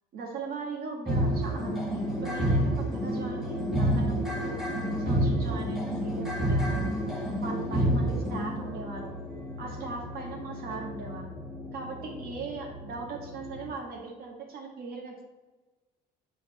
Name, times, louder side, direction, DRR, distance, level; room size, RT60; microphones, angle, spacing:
voice 1, 0.1-6.9 7.4-9.2 9.6-11.3 11.7-15.2, right 4 dB, 65° right, 1 dB, 1.8 m, -39 dB
sound 1, 1.1-13.7, equal, ahead, 1.4 m, -30 dB
7.3 x 4.8 x 4.1 m, 1.2 s
cardioid pair, 110°, 17 cm